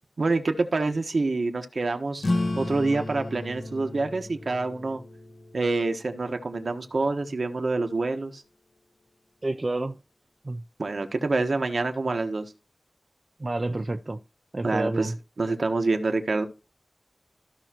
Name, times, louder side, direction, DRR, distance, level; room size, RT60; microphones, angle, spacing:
voice 1, 0.2-2.2 2.6-5.0 5.5-8.4 10.8-12.5 14.6-15.1 15.4-16.4, right 3 dB, 70° right, 1.3 m, -26 dB
sound 1, 2.2-7.3, left 2 dB, 75° left, 1.2 m, -34 dB
voice 2, 9.4-10.0 10.4-10.6 13.4-14.2 14.5-15.2, right 2 dB, 40° right, 0.5 m, -29 dB
15.0 x 5.7 x 2.9 m
wide cardioid pair, 85°, 0 cm